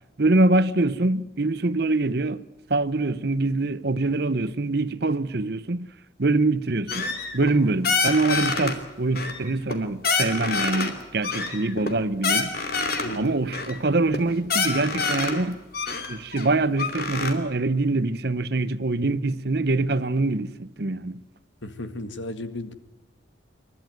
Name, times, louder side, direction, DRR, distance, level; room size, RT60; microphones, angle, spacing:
voice 1, 0.2-2.4 2.7-5.9 6.2-7.1 7.3-12.5 13.1-15.6 16.1-21.2, right 2 dB, 55° right, 0.8 m, -24 dB
sound 1, 6.9-7.6 7.8-8.7 9.1-9.8 10.0-10.9 11.2-13.2 13.5-13.8 14.1-14.2 14.4-15.4 15.7-17.3, left 4 dB, 50° left, 2.9 m, -26 dB
voice 2, 13.0-13.4 21.6-22.7, left 2 dB, 75° left, 2.0 m, -35 dB
29.5 x 13.0 x 9.2 m
head